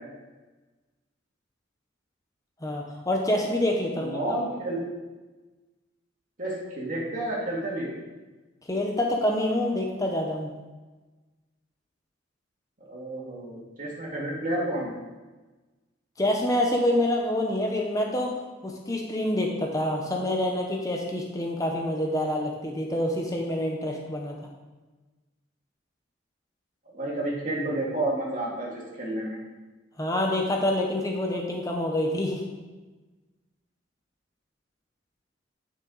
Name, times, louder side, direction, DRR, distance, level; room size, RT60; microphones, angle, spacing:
voice 1, 2.6-4.2 8.7-10.5 16.2-18.4 18.6-24.4 30.0-32.4, left 1 dB, 15° left, 0 dB, 0.8 m, -27 dB
voice 2, 3.9-4.8 6.4-7.9 12.8-15.0 26.9-29.4, right 1 dB, 45° right, -4 dB, 2.3 m, -30 dB
9.7 x 6.0 x 3.9 m, 1.2 s
head